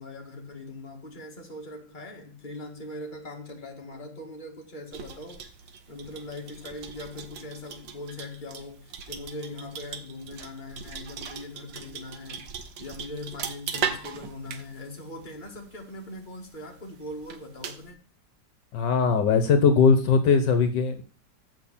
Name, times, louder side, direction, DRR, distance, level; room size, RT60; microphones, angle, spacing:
voice 1, 0.0-5.4 5.9-12.5 12.8-18.0, left 2 dB, 25° left, 1.9 m, -41 dB
sound 1, 4.9-17.9, right 7 dB, 80° right, 1.7 m, -39 dB
voice 2, 18.7-21.0, left 5 dB, 75° left, 1.6 m, -20 dB
7.8 x 5.7 x 7.1 m
omnidirectional pair, 2.0 m